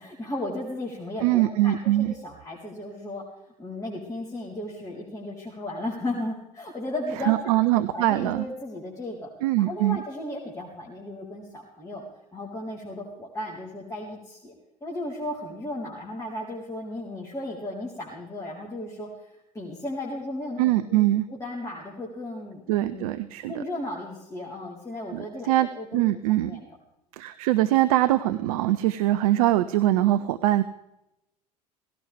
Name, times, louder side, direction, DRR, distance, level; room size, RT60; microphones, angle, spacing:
voice 1, 0.0-3.2 3.6-7.6 7.9-9.3 9.6-12.0 12.3-14.5 14.8-19.3 19.5-21.0 21.3-23.1 23.5-26.0 26.5-26.7, left 1 dB, 15° left, -4 dB, 4.1 m, -35 dB
voice 2, 1.2-2.1 7.3-8.4 9.4-10.0 20.6-21.2 22.7-23.6 25.1-26.5 27.1-30.6, right 15 dB, 60° right, 12 dB, 0.7 m, -23 dB
18.5 x 16.5 x 3.5 m, 0.88 s
figure-of-eight pair, 70°, 20 cm